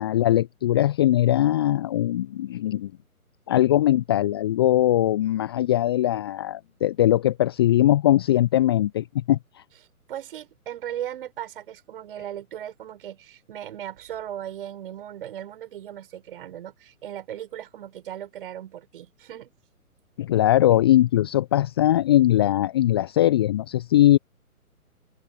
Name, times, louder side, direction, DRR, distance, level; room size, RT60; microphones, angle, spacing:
voice 1, 0.0-2.9 3.5-9.4 20.2-24.2, left 13 dB, 15° left, 0.8 m, -20 dB
voice 2, 10.1-19.5, right 11 dB, 35° right, 6.7 m, -37 dB
figure-of-eight pair, 135°, 45 cm